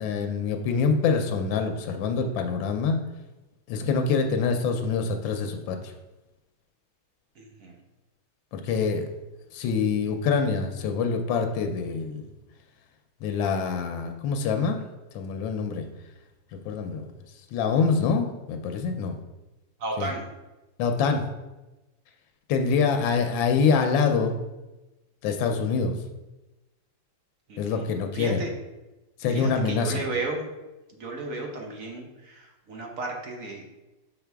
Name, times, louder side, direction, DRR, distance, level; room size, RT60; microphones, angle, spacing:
voice 1, 0.0-3.0 3.7-5.9 8.5-9.1 9.5-12.2 13.2-14.8 15.1-15.9 16.5-17.1 17.5-19.1 20.0-20.1 20.8-21.3 22.5-24.4 25.2-26.0 27.6-28.4 29.2-29.9, left 5 dB, 85° left, 6 dB, 1.4 m, -25 dB
voice 2, 7.4-7.8 19.8-20.3 27.5-27.9 28.1-28.5 29.3-30.5 30.9-33.6, right 2 dB, 55° right, 1 dB, 1.1 m, -34 dB
5.7 x 4.8 x 3.4 m, 1.0 s
omnidirectional pair, 2.0 m